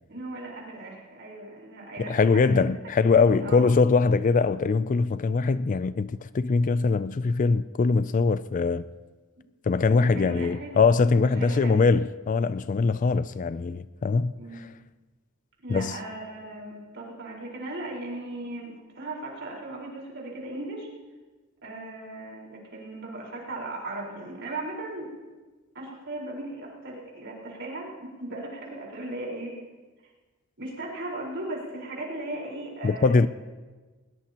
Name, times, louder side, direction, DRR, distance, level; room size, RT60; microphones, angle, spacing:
voice 1, 0.1-2.7 3.0-3.8 9.4-9.5 10.0-10.7 11.1-11.8 14.4-14.6 15.6-20.9 21.6-25.1 25.7-29.5 30.6-33.3, right 2 dB, 60° right, 4.5 m, -37 dB
voice 2, 2.0-8.9 9.7-14.7 15.7-16.0 32.8-33.3, left 4 dB, 35° left, 0.3 m, -22 dB
20.5 x 20.5 x 2.9 m
head